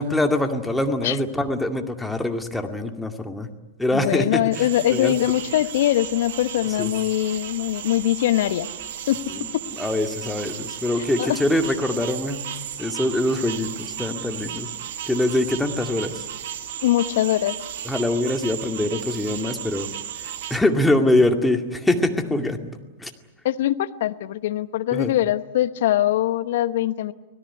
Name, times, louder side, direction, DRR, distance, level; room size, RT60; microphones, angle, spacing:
voice 1, 0.0-3.5 3.8-5.2 6.7-6.9 9.3-9.5 9.8-12.5 12.8-14.7 15.0-16.3 17.8-19.9 20.5-23.1 24.9-25.1, left 1 dB, 5° left, 4 dB, 2.2 m, -24 dB
voice 2, 3.9-8.7 9.1-9.2 11.2-11.4 16.8-17.5 23.4-27.1, left 13 dB, 60° left, 13 dB, 1.0 m, -22 dB
sound 1, 4.5-20.6, right 10 dB, 60° right, 1.7 m, -34 dB
25.0 x 17.5 x 9.9 m, 1.2 s
hypercardioid pair, 100°, 0 cm